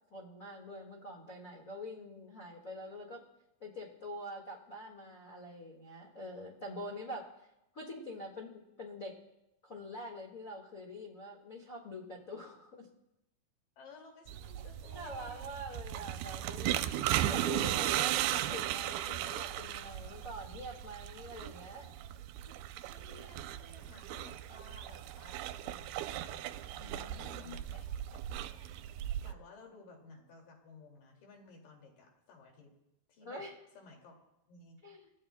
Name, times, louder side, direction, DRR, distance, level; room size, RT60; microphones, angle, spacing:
voice 1, 0.1-3.2 3.6-7.3 7.7-9.2 9.6-12.9 14.9-16.9 17.3-21.9 26.8-27.6 33.2-33.5 34.8-35.1, equal, 85° left, -2 dB, 0.7 m, -45 dB
voice 2, 13.8-15.5 16.0-16.1 22.9-28.7 29.2-32.7 33.1-33.4 33.8-34.1 34.5-34.8, left 4 dB, 60° left, 1 dB, 3.8 m, -56 dB
sound 1, 14.3-29.3, right 12 dB, 80° right, 2.4 m, -37 dB
29.5 x 15.5 x 2.2 m, 0.88 s
omnidirectional pair, 4.7 m